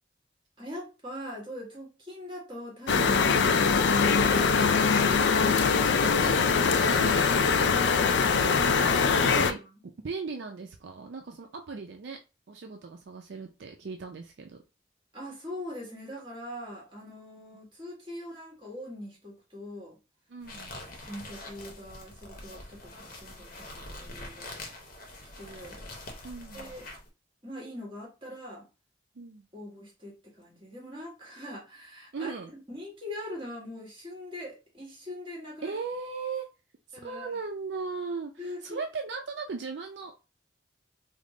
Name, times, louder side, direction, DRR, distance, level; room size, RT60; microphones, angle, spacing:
voice 1, 0.6-5.1 8.8-9.8 15.1-20.0 20.8-24.6 25.2-25.8 26.5-26.9 27.4-28.7 29.5-35.7 36.9-37.3 38.4-38.8, left 1 dB, 25° right, 1.6 m, -42 dB
sound 1, 2.9-9.5, left 5 dB, 65° left, 0.4 m, -23 dB
voice 2, 5.4-8.6 9.4-9.6 10.0-12.2 12.5-14.6 20.3-20.8 26.2-26.8 29.2-29.5 32.1-32.5 35.6-36.5 36.9-40.1, right 4 dB, 65° right, 0.4 m, -38 dB
sound 2, 20.4-27.1, left 2 dB, 45° left, 0.8 m, -44 dB
3.6 x 2.0 x 3.7 m
head